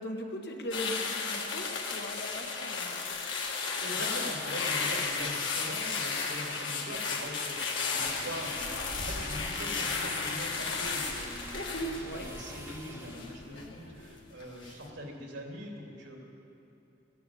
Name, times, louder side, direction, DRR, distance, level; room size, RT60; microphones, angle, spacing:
voice 1, 0.0-3.0 12.0-12.3, equal, 55° left, 2 dB, 1.6 m, -39 dB
sound 1, 0.7-14.1 14.4-14.7, left 4 dB, 85° left, 2.0 m, -34 dB
voice 2, 3.8-16.2, equal, 80° right, 0 dB, 3.0 m, -42 dB
sound 2, 8.0-13.2, right 1 dB, 15° right, 1.2 m, -44 dB
16.0 x 10.5 x 8.6 m, 2.7 s
head